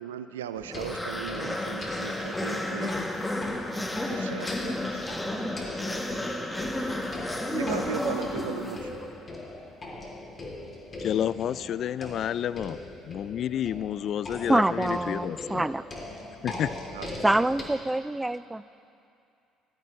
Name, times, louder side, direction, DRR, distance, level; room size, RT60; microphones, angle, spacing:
voice 1, 0.0-2.9 4.0-5.0 7.5-9.0 16.9-17.1, right 9 dB, 90° right, 11 dB, 0.4 m, -37 dB
sound 1, 0.6-17.6, left 2 dB, 35° left, 3.1 m, -40 dB
sound 2, 0.7-9.2, left 1 dB, 10° left, 1.4 m, -32 dB
voice 2, 11.0-12.8 13.0-15.7 16.4-16.7, left 10 dB, 60° left, 17 dB, 0.3 m, -30 dB
voice 3, 14.5-15.8 17.2-18.6, right 1 dB, 10° right, 16 dB, 0.4 m, -25 dB
18.5 x 13.5 x 3.2 m, 2.5 s
hypercardioid pair, 55°, 0 cm